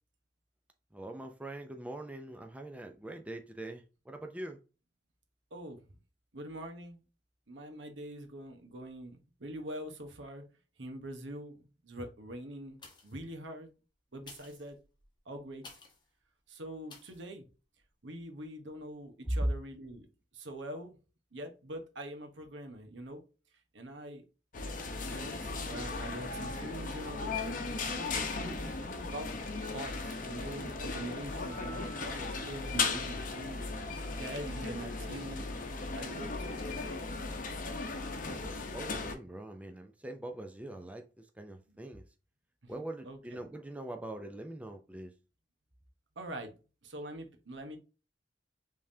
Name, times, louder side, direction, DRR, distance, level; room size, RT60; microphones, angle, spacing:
voice 1, 0.9-4.6 19.2-19.4 38.4-42.0 42.7-45.1, right 1 dB, 10° right, 0.5 m, -42 dB
voice 2, 6.3-7.0 7.5-10.4 10.8-13.7 14.1-14.8 15.3-15.6 16.5-17.4 18.0-20.1 20.3-21.0 21.3-23.2 23.7-24.2 25.0-29.3 29.7-33.6 34.1-35.5 35.9-36.6 41.7-41.8 43.1-43.2 46.2-46.5 46.8-47.8, right 1 dB, 75° right, 1.1 m, -44 dB
sound 1, 12.7-13.3 14.1-16.1 16.9-17.3 17.8-17.9, left 3 dB, 25° left, 1.1 m, -54 dB
sound 2, 24.5-39.1, left 3 dB, 45° left, 0.9 m, -37 dB
sound 3, 26.8-33.0, right 1 dB, 45° right, 1.5 m, -55 dB
5.3 x 3.5 x 2.7 m
head